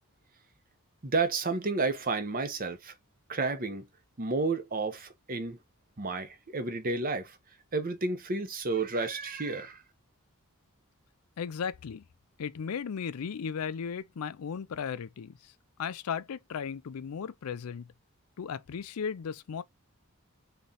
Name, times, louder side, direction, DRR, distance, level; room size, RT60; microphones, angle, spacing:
voice 1, 1.0-2.9 3.3-3.9 4.2-5.6 6.0-7.4 7.7-9.8, right 3 dB, 40° right, 0.9 m, -31 dB
voice 2, 11.4-12.0 12.4-15.3 15.8-17.9 18.4-19.6, left 6 dB, 80° left, 0.4 m, -36 dB
3.8 x 3.2 x 4.0 m
head